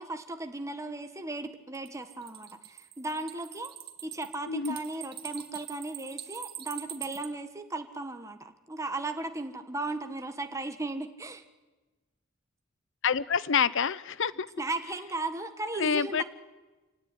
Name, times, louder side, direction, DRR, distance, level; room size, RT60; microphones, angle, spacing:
voice 1, 0.0-3.7 4.0-11.4 14.6-16.2, right 2 dB, 15° right, 7 dB, 1.5 m, -36 dB
sound 1, 1.7-7.3, right 11 dB, 50° right, 2.1 m, -43 dB
voice 2, 4.5-4.8 13.0-14.5 15.7-16.2, left 6 dB, 65° left, 19 dB, 0.7 m, -27 dB
26.0 x 17.5 x 9.7 m, 1.2 s
head